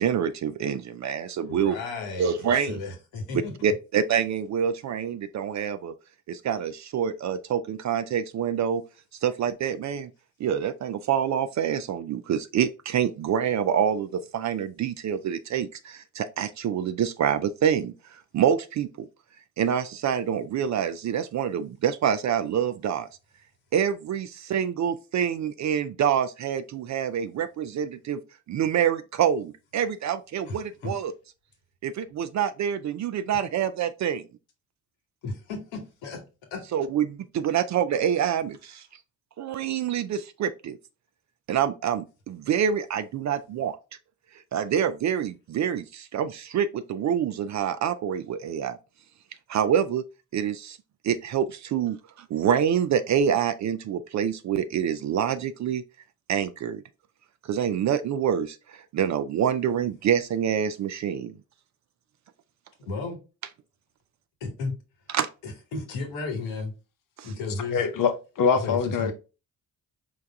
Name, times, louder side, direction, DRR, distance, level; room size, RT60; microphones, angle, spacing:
voice 1, 0.0-1.8 2.2-2.8 3.6-5.9 6.3-8.8 9.2-10.1 10.4-19.1 19.6-23.1 23.7-28.2 28.5-31.1 31.8-34.2 36.7-38.9 39.4-40.8 41.5-43.8 44.5-48.8 49.5-50.0 50.3-50.8 51.0-55.8 56.3-56.8 57.4-61.3 65.1-65.3 67.2-67.3, right 8 dB, 40° right, 0.4 m, -26 dB
voice 2, 1.4-3.5 30.5-30.9 35.2-36.2 36.5-36.6 62.9-63.2 64.4-64.7 65.4-66.7 67.2-67.8 68.5-69.1, left 3 dB, 75° left, 1.2 m, -34 dB
voice 3, 67.7-69.1, left 6 dB, 45° left, 0.8 m, -24 dB
4.8 x 2.2 x 3.4 m
hypercardioid pair, 40°, 46 cm